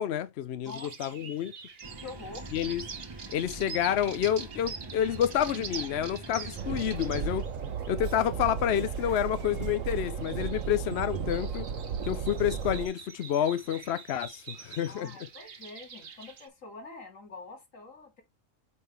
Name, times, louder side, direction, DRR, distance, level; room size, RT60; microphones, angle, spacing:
voice 1, 0.0-1.5 2.5-2.8 3.3-7.4 7.9-11.7 12.0-15.1, left 10 dB, 65° left, 0.8 m, -29 dB
sound 1, 0.6-16.5, right 6 dB, 50° right, 1.2 m, -46 dB
sound 2, 1.8-7.4, right 3 dB, 25° right, 0.7 m, -43 dB
voice 2, 2.0-2.5 14.9-18.2, left 3 dB, 80° left, 2.4 m, -45 dB
Train, 6.6-12.9, right 6 dB, 90° right, 1.3 m, -34 dB
8.5 x 3.7 x 3.3 m
omnidirectional pair, 1.3 m